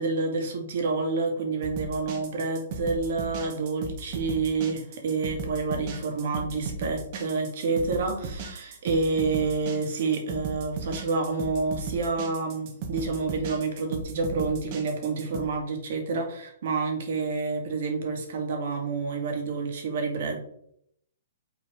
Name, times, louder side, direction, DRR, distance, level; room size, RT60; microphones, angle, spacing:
voice 1, 0.0-20.4, right 4 dB, 60° right, 2 dB, 2.1 m, -28 dB
sound 1, 1.6-15.4, right 4 dB, 40° right, 1.5 m, -36 dB
6.3 x 3.9 x 4.9 m, 0.72 s
hypercardioid pair, 135°, 0 cm